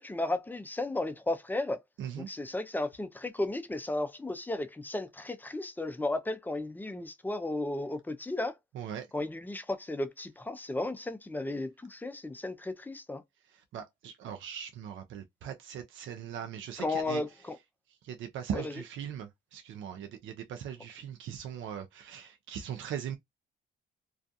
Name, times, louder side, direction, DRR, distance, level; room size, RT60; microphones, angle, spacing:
voice 1, 0.0-1.8 2.2-8.5 9.1-13.2 16.8-17.6 18.5-18.7, left 2 dB, 10° left, 0.4 m, -34 dB
voice 2, 2.0-2.3 8.7-9.1 13.5-17.2 18.0-23.2, right 8 dB, 75° right, 0.5 m, -40 dB
2.4 x 2.3 x 2.6 m
cardioid pair, 90°, 20 cm